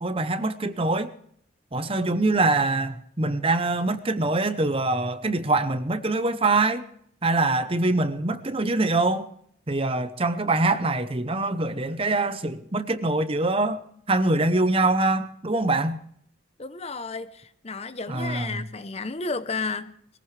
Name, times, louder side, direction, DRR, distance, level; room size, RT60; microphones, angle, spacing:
voice 1, 0.0-1.1 1.7-6.8 7.2-9.3 9.7-13.8 14.1-16.0 18.1-18.6, right 2 dB, 25° right, 0.8 m, -24 dB
voice 2, 16.6-19.9, left 3 dB, 30° left, 0.8 m, -32 dB
22.0 x 15.5 x 3.3 m
head